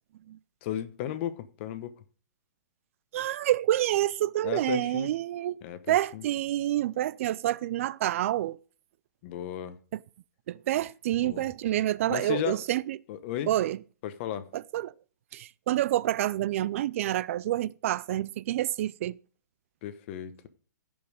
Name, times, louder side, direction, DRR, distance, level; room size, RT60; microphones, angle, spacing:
voice 1, 0.6-2.0 4.4-5.1 5.6-6.2 9.2-9.8 11.2-11.5 12.1-12.6 13.1-13.5 14.0-14.5 19.8-20.5, left 10 dB, 40° left, 1.0 m, -35 dB
voice 2, 3.1-5.6 5.9-8.6 9.9-10.0 10.5-13.0 13.5-13.8 14.5-14.9 15.3-19.2, right 13 dB, 45° right, 0.4 m, -28 dB
14.5 x 5.5 x 5.1 m
hypercardioid pair, 150°, 10 cm